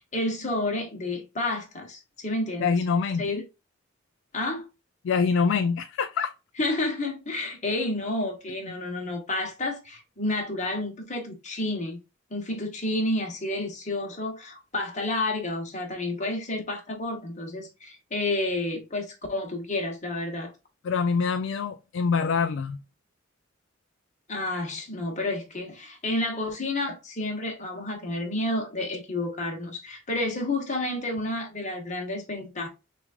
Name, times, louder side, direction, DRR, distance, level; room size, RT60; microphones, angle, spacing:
voice 1, 0.0-2.7 3.2-3.4 4.3-4.6 6.6-12.0 12.3-20.5 24.3-32.7, left 2 dB, 35° left, 1.1 m, -30 dB
voice 2, 2.6-3.4 5.0-6.3 20.8-22.8, left 5 dB, 65° left, 0.3 m, -25 dB
6.0 x 2.5 x 2.5 m
head